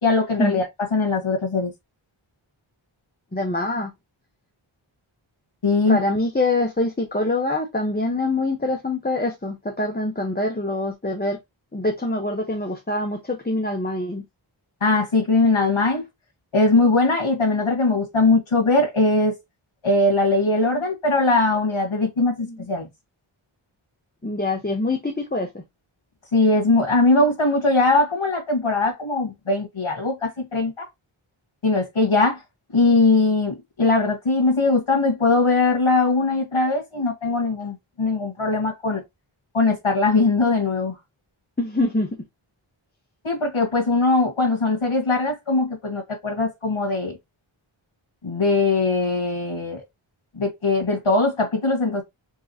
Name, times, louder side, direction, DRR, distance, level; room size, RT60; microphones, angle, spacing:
voice 1, 0.0-0.6 0.9-1.7 5.6-6.0 14.8-16.0 16.5-19.3 19.8-22.9 26.3-30.9 31.6-32.4 32.7-39.0 39.5-40.9 43.2-47.2 48.2-49.8 50.3-52.0, left 3 dB, 75° left, 1.7 m, -20 dB
voice 2, 3.3-3.9 5.9-11.4 11.7-14.2 22.4-22.6 24.2-25.5 41.6-42.1, left 2 dB, 20° left, 1.0 m, -24 dB
4.7 x 3.7 x 2.8 m
wide cardioid pair, 50°, 49 cm